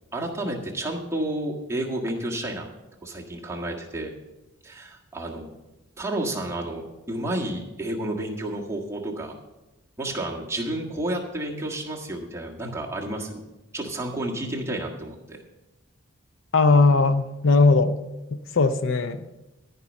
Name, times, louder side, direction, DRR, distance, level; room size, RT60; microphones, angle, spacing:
voice 1, 0.1-2.7 3.0-4.1 4.6-5.5 6.0-9.4 10.0-13.4 13.7-15.4, right 1 dB, 15° right, -2 dB, 1.5 m, -31 dB
voice 2, 16.5-18.0 18.3-19.3, left 3 dB, 65° left, 10 dB, 0.6 m, -19 dB
14.0 x 5.3 x 7.2 m, 1.0 s
head